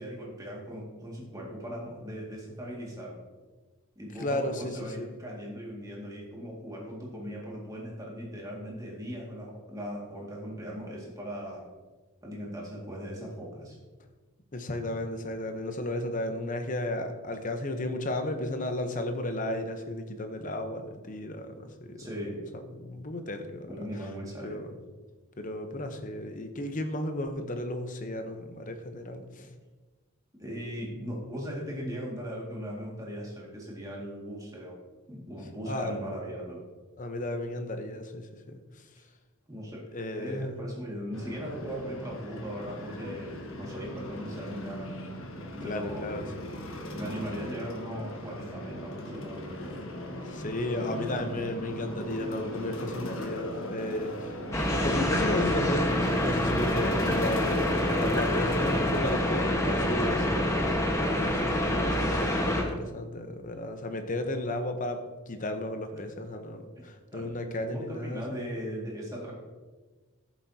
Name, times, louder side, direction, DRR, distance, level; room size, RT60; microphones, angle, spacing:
voice 1, 0.0-3.2 4.0-11.6 12.2-13.8 22.0-22.4 23.7-24.6 29.4-29.5 30.4-34.8 35.1-36.6 39.5-39.9 40.2-44.9 45.6-46.2 46.9-49.7 59.6-60.5 67.1-67.3 67.6-69.3, equal, 15° right, -3 dB, 2.0 m, -38 dB
voice 2, 4.2-5.1 14.5-22.1 22.7-23.9 24.4-24.6 25.4-29.5 35.7-36.0 37.0-38.8 39.9-40.5 45.6-46.2 50.3-54.4 54.7-57.7 57.9-60.3 61.1-68.2, left 1 dB, 35° left, 6 dB, 0.8 m, -34 dB
sound 1, 41.1-59.5, left 1 dB, 65° left, 1.4 m, -38 dB
sound 2, 54.5-62.6, left 1 dB, 15° left, 1.2 m, -27 dB
13.5 x 7.3 x 2.8 m, 1.3 s
head